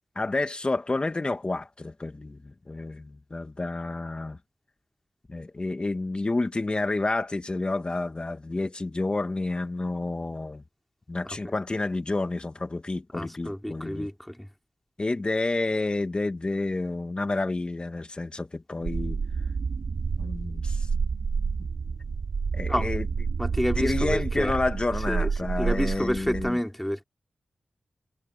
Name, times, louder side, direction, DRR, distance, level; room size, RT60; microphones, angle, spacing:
voice 1, 0.2-4.4 5.3-10.6 11.1-14.1 15.0-19.2 20.2-20.9 22.5-23.1 23.8-26.6, left 2 dB, 35° left, 1.8 m, -29 dB
voice 2, 11.2-11.5 13.1-14.5 22.7-22.9 23.4-24.6 25.1-27.0, equal, 5° left, 4.2 m, -30 dB
sound 1, 18.8-26.5, right 5 dB, 80° right, 2.9 m, -29 dB
wide cardioid pair, 80°, 3 cm